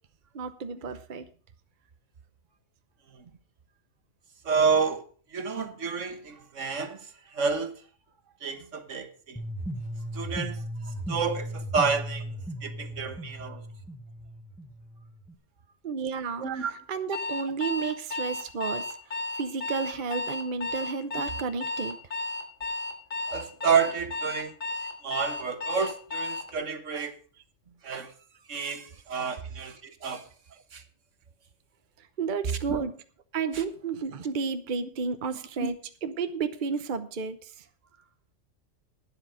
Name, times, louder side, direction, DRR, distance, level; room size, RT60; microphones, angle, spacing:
voice 1, 0.3-1.3 15.8-22.0 30.5-30.6 32.0-33.0 33.3-37.7, right 5 dB, 45° right, 0.9 m, -32 dB
voice 2, 4.4-5.0 5.3-7.0 7.3-7.8 8.4-9.4 10.1-10.6 11.1-12.2 12.6-13.6 16.4-16.7 23.3-24.5 25.0-27.1 27.8-28.1 28.5-30.2 30.7-30.8 32.7-32.9 35.6-35.7, right 5 dB, 70° right, 1.6 m, -29 dB
sound 1, 9.4-15.3, equal, ahead, 1.1 m, -37 dB
Alarm, 17.1-26.5, left 2 dB, 85° left, 2.3 m, -33 dB
12.0 x 10.0 x 4.9 m
omnidirectional pair, 1.3 m